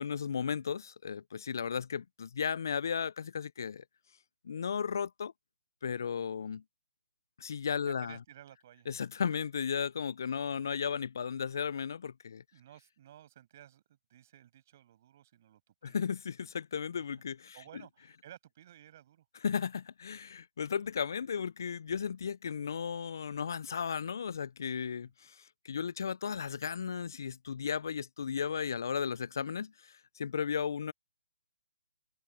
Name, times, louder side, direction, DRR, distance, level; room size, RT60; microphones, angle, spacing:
voice 1, 0.0-3.8 4.4-5.3 5.8-6.6 7.4-8.1 8.9-12.4 15.8-17.6 19.4-30.9, left 7 dB, 60° left, 0.5 m, -35 dB
voice 2, 7.8-8.9 10.4-10.6 12.5-13.8 14.1-16.0 17.5-19.2 25.0-25.1, right 11 dB, 40° right, 7.0 m, -55 dB
open air
figure-of-eight pair, 140°, 2 cm